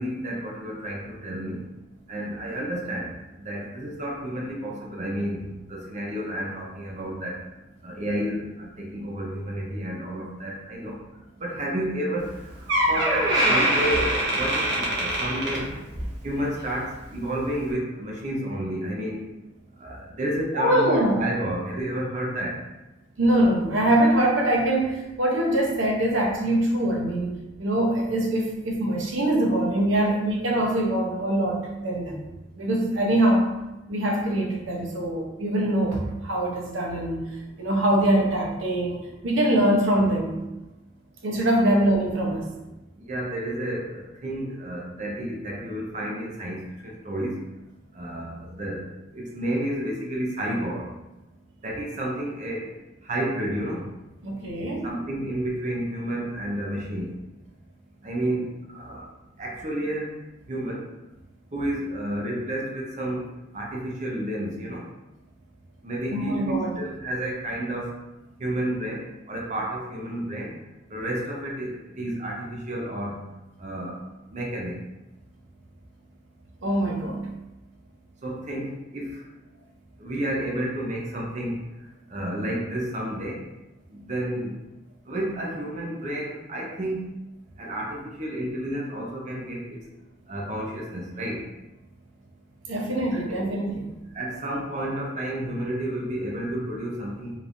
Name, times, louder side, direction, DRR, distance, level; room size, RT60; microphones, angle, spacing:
voice 1, 0.0-1.6 2.1-7.4 7.8-11.0 11.4-12.3 12.8-15.7 16.2-19.2 19.8-22.5 41.6-41.7 43.1-47.3 47.9-48.9 49.1-50.9 51.6-52.7 53.0-53.9 54.8-57.1 58.0-59.0 59.4-60.1 60.5-60.8 61.5-63.2 63.5-64.8 65.8-67.9 68.4-70.5 70.9-73.2 73.6-74.0 74.3-74.8 78.2-79.2 80.0-81.6 82.1-83.4 83.9-84.5 85.1-87.0 87.6-89.8 90.3-91.4 93.1-93.5 94.1-97.3, right 1 dB, 40° right, -2 dB, 0.7 m, -31 dB
Door, 12.2-12.3 12.7-16.2 16.5-16.8 17.5-17.6, right 1 dB, 60° right, 1.2 m, -24 dB
voice 2, 20.5-21.2 23.2-27.3 27.6-32.2 32.5-33.5 33.9-37.2 37.6-40.4 41.2-42.5 54.2-54.9 66.1-66.7 76.6-77.2 92.7-93.9, right 1 dB, 90° right, -1 dB, 0.8 m, -23 dB
4.9 x 3.4 x 2.6 m, 0.99 s
head